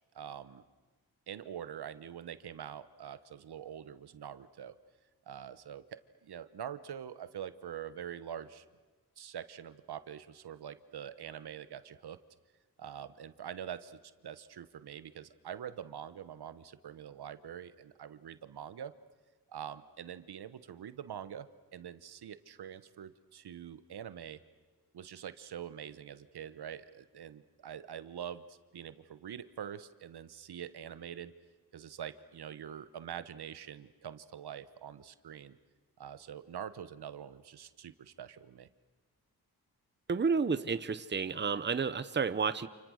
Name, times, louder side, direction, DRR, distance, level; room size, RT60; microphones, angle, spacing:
voice 1, 0.1-0.6 1.3-4.7 5.3-8.6 9.2-12.2 12.8-18.9 19.5-24.4 24.9-31.3 31.7-35.6 36.0-38.7, right 9 dB, 75° right, 13 dB, 1.1 m, -45 dB
voice 2, 40.1-42.7, right 5 dB, 30° right, 13 dB, 0.9 m, -31 dB
29.5 x 28.5 x 6.4 m, 1.2 s
wide cardioid pair, 105°, 39 cm